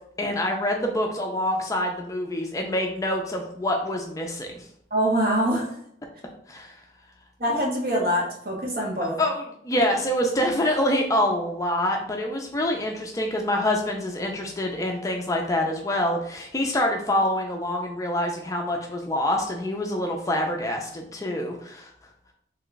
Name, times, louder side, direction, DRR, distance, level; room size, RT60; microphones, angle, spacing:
voice 1, 0.2-4.6 6.5-6.7 9.2-21.9, left 1 dB, 20° left, 1 dB, 0.4 m, -26 dB
voice 2, 4.9-5.8 7.4-9.2, equal, 50° right, -2 dB, 1.0 m, -24 dB
3.0 x 2.2 x 3.9 m, 0.70 s
head